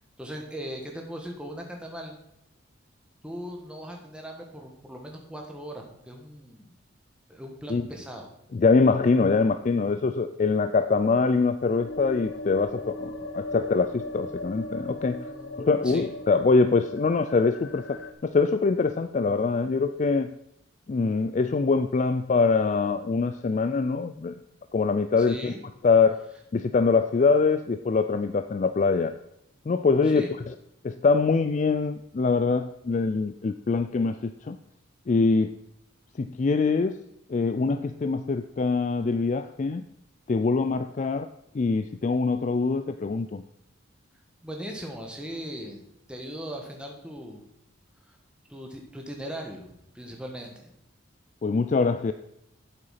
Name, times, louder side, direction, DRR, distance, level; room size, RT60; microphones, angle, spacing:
voice 1, 0.2-2.1 3.2-6.7 7.3-8.3 15.3-16.0 25.2-25.7 30.1-30.3 44.4-47.4 48.1-48.2 48.5-50.7, equal, 5° right, 1 dB, 1.4 m, -39 dB
voice 2, 8.5-15.3 15.6-20.3 20.9-24.4 24.7-25.5 25.8-26.2 26.5-29.1 29.7-30.5 30.8-34.6 35.1-35.5 36.2-37.0 37.3-39.8 40.3-41.3 41.5-43.4 51.4-52.1, left 4 dB, 35° left, 10 dB, 0.3 m, -24 dB
sound 1, 11.8-18.1, left 1 dB, 65° left, 1.0 m, -38 dB
8.1 x 7.9 x 5.7 m, 0.80 s
head